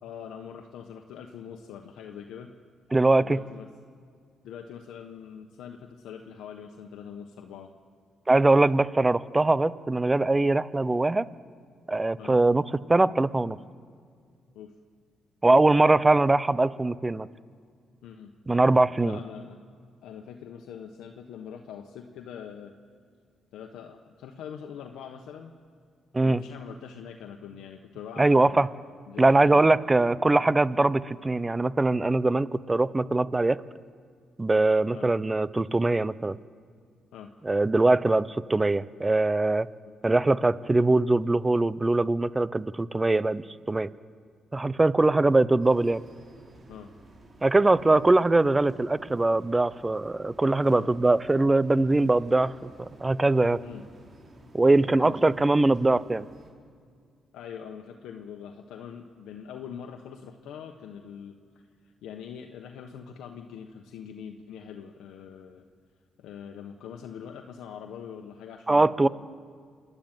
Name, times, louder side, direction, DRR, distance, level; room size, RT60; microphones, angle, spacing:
voice 1, 0.0-2.5 3.2-3.7 4.4-7.7 12.2-12.4 14.5-14.7 18.0-18.3 19.0-19.7 20.0-23.0 23.5-25.5 26.2-28.7 29.1-29.9 30.7-30.8 34.9-35.1 37.1-37.3 40.1-40.2 46.7-46.9 50.7-50.9 53.6-53.9 55.0-55.3 57.3-61.3 61.8-65.6 66.2-69.1, left 8 dB, 85° left, 4 dB, 1.2 m, -43 dB
voice 2, 2.9-3.4 8.3-11.3 11.9-13.6 15.4-17.3 18.5-19.2 26.1-26.4 28.2-28.7 29.2-33.6 34.4-36.4 37.4-39.7 40.0-43.9 44.5-46.0 47.4-53.6 54.5-56.3 68.7-69.1, right 2 dB, 20° right, 17 dB, 0.6 m, -22 dB
sound 1, 45.6-56.5, right 1 dB, 40° right, 4.7 m, -53 dB
26.0 x 11.5 x 9.0 m, 2.1 s
cardioid pair, 90°, 0 cm